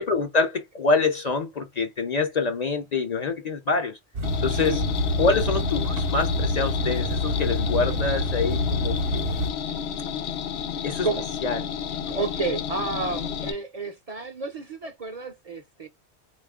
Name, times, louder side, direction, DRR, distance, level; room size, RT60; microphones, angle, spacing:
voice 1, 0.0-4.0 4.4-4.8 5.2-9.4 10.8-11.1 11.4-11.7, left 4 dB, 45° left, 0.6 m, -26 dB
sound 1, 4.1-9.5, left 1 dB, 65° right, 0.9 m, -27 dB
sound 2, 4.2-13.5, left 8 dB, 85° left, 0.8 m, -32 dB
voice 2, 12.1-15.9, right 4 dB, 45° right, 0.5 m, -31 dB
4.0 x 2.4 x 3.4 m
omnidirectional pair, 1.1 m